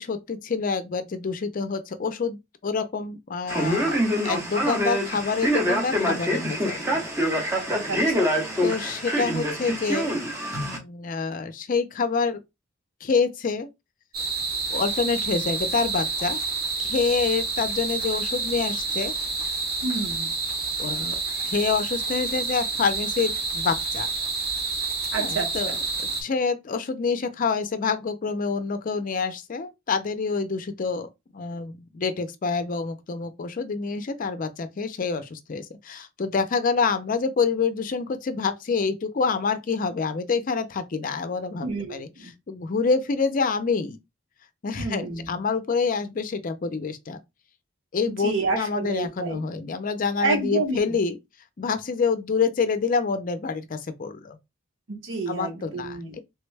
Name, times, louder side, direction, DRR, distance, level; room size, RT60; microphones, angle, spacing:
voice 1, 0.0-4.0 4.2-7.5 8.6-10.1 10.6-12.4 13.0-13.7 14.7-16.4 16.8-19.1 20.8-21.2 21.5-24.1 25.2-25.7 26.0-44.0 44.6-47.2 47.9-51.2 51.6-54.4 55.3-56.2, left 5 dB, 45° left, 0.4 m, -27 dB
Male speech man speaking, 3.5-10.8, equal, 15° right, 0.8 m, -25 dB
voice 2, 7.9-8.4 19.8-20.3 25.1-25.5 41.6-42.3 44.8-45.4 48.2-49.4 50.2-50.8 54.9-56.2, right 3 dB, 80° right, 1.1 m, -29 dB
sound 1, 14.1-26.2, right 4 dB, 50° right, 1.3 m, -28 dB
3.4 x 2.2 x 3.2 m
head